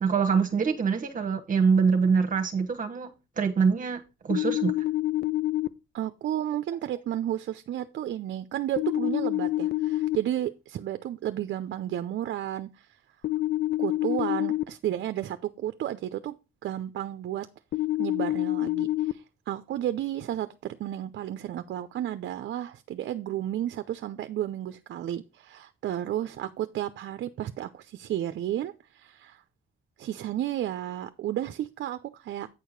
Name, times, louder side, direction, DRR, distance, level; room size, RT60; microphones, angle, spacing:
voice 1, 0.0-4.7, right 5 dB, 45° right, 1.1 m, -25 dB
sound 1, 4.3-5.7 8.8-10.2 13.2-14.6 17.7-19.1, left 16 dB, 55° left, 0.6 m, -27 dB
voice 2, 5.9-12.9 13.8-16.3 16.6-17.5 18.0-29.4 30.0-32.5, right 12 dB, 65° right, 0.6 m, -32 dB
8.8 x 4.7 x 5.1 m
cardioid pair, 90°, 20 cm